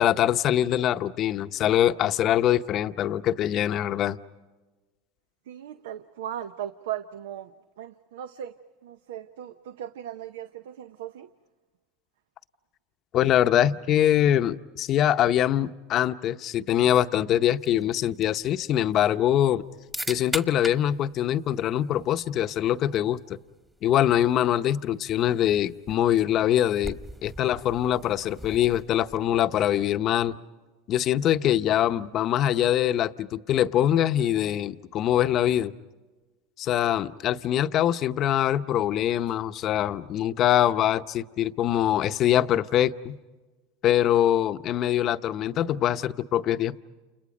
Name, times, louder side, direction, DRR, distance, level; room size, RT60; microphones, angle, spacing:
voice 1, 0.0-4.2 13.1-19.6 20.1-23.2 23.8-30.4 30.9-35.7 36.6-43.2 43.8-46.8, left 11 dB, 45° left, 0.8 m, -23 dB
voice 2, 5.5-8.6 8.8-11.3, right 11 dB, 80° right, 0.7 m, -38 dB
sound 1, 17.5-29.5, right 1 dB, 10° right, 1.4 m, -42 dB
29.5 x 29.5 x 5.2 m
supercardioid pair, 105°, 0 cm